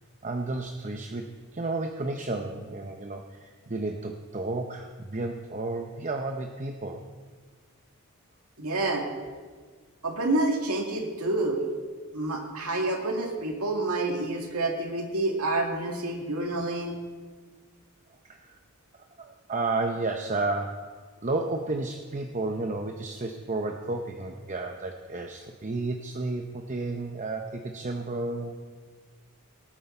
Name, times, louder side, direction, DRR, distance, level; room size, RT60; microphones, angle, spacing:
voice 1, 0.2-7.0 18.3-18.5 19.2-20.9 21.2-28.6, right 2 dB, 35° right, 4 dB, 0.7 m, -32 dB
voice 2, 8.6-9.1 10.0-11.6 12.1-17.0, right 2 dB, 80° right, 1 dB, 2.1 m, -28 dB
18.5 x 9.9 x 4.4 m, 1.5 s
head